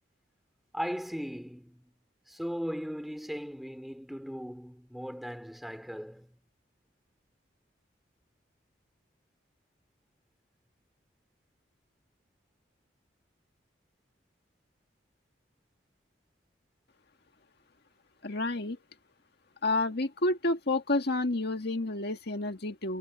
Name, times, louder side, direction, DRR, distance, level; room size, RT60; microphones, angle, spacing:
voice 1, 0.7-1.9 2.3-6.3, equal, ahead, 2.9 m, -38 dB
voice 2, 18.2-18.8 19.6-23.0, left 2 dB, 60° left, 1.9 m, -29 dB
head